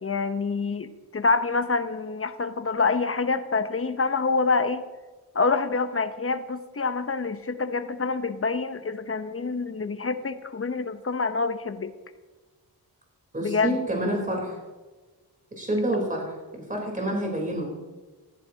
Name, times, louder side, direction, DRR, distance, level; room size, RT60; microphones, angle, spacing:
voice 1, 0.0-4.8 5.3-11.9 13.4-13.8, left 4 dB, 35° left, 10 dB, 0.9 m, -26 dB
voice 2, 13.3-14.6 15.5-16.3 16.7-17.7, right 1 dB, 20° right, -1 dB, 3.8 m, -28 dB
16.0 x 14.0 x 2.9 m, 1.3 s
cardioid pair, 70°, 39 cm